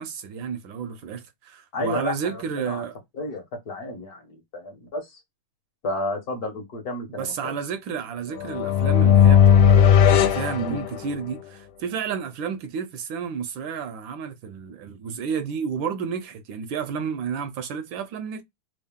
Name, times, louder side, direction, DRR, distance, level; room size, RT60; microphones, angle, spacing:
voice 1, 0.0-3.0 7.2-18.4, right 6 dB, 75° right, 1.2 m, -31 dB
voice 2, 1.7-2.8 3.1-5.2 5.8-7.5 10.6-10.8, left 2 dB, 55° left, 1.3 m, -32 dB
sound 1, 8.4-11.4, left 8 dB, 75° left, 1.4 m, -17 dB
3.5 x 2.4 x 3.5 m
omnidirectional pair, 2.4 m